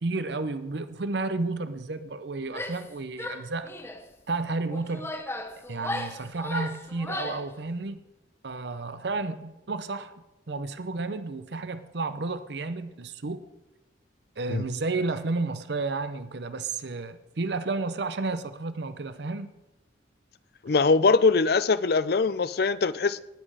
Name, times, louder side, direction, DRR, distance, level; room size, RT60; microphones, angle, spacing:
voice 1, 0.0-3.7 4.3-5.1 5.7-8.0 8.4-10.1 10.5-13.4 14.4-19.5, right 3 dB, 65° right, 0.7 m, -32 dB
Female speech woman speaking / Yell, 2.5-2.9 3.2-4.0 4.7-7.5, left 2 dB, 15° left, 0.8 m, -36 dB
voice 2, 20.6-23.2, left 4 dB, 55° left, 0.5 m, -22 dB
18.5 x 7.6 x 4.9 m
head